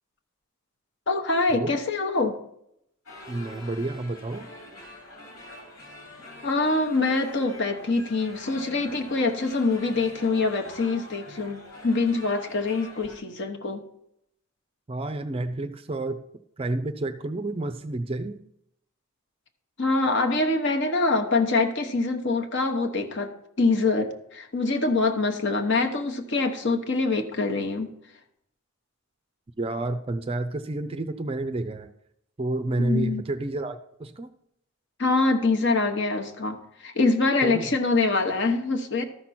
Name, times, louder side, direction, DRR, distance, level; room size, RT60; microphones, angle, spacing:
voice 1, 1.1-2.4 6.4-13.8 19.8-23.3 23.6-27.9 32.8-33.2 35.0-39.0, left 3 dB, 55° left, 1.1 m, -24 dB
sound 1, 3.1-13.2, left 1 dB, 85° left, 2.9 m, -45 dB
voice 2, 3.3-4.5 14.9-16.2 16.6-18.4 29.6-31.9 32.4-34.3 37.4-37.7, right 2 dB, 25° right, 0.4 m, -30 dB
13.0 x 5.9 x 4.3 m
head